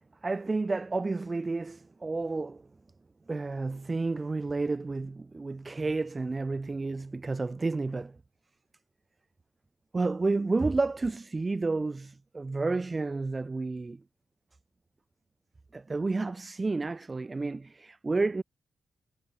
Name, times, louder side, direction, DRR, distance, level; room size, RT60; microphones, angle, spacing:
voice 1, 0.2-2.7 3.3-8.2 9.9-14.0 15.7-18.4, right 3 dB, 30° right, 4.3 m, -31 dB
cardioid pair, 65°, 0 cm